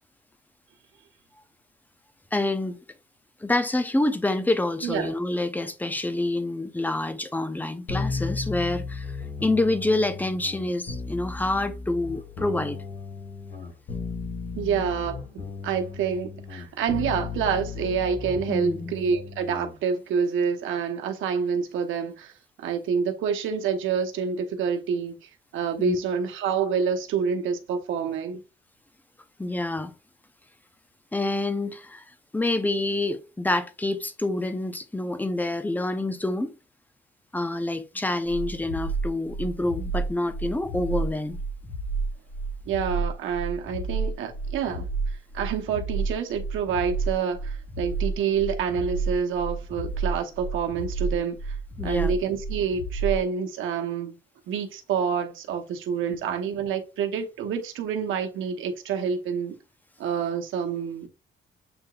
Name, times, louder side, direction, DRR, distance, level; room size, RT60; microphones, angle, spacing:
voice 1, 2.3-2.8 3.4-9.1 9.4-12.8 18.5-18.9 25.8-26.0 29.4-29.9 31.1-32.0 32.3-36.5 37.3-41.4 51.8-52.1, left 2 dB, 10° left, 0.7 m, -27 dB
voice 2, 4.8-5.2 14.5-15.2 15.6-22.3 22.6-28.4 42.7-44.8 45.3-51.6 51.8-54.2 54.5-59.6 60.0-61.1, right 6 dB, 80° right, 1.0 m, -27 dB
sound 1, 7.9-19.7, left 4 dB, 70° left, 2.4 m, -35 dB
sound 2, 38.3-53.2, right 4 dB, 45° left, 1.2 m, -30 dB
7.8 x 2.8 x 2.4 m
cardioid pair, 90°, 20 cm